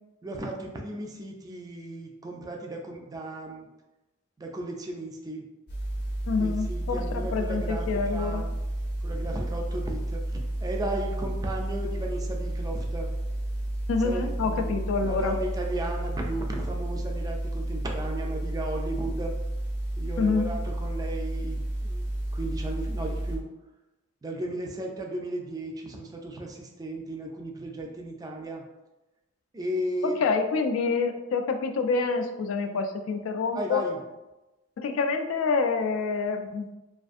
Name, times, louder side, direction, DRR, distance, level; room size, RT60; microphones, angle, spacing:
voice 1, 0.2-3.7 4.4-5.5 6.4-8.6 9.0-13.1 14.0-19.3 20.0-22.1 22.3-23.4 24.2-28.6 29.5-30.2 33.5-34.0, right 1 dB, 20° right, 1 dB, 0.3 m, -35 dB
sound 1, 5.7-23.4, right 1 dB, 55° left, 0.7 m, -31 dB
voice 2, 6.3-8.4 13.9-15.3 20.2-20.5 30.0-33.8 34.8-36.8, left 4 dB, 75° left, 6 dB, 0.3 m, -27 dB
2.5 x 2.4 x 2.4 m, 1.0 s
head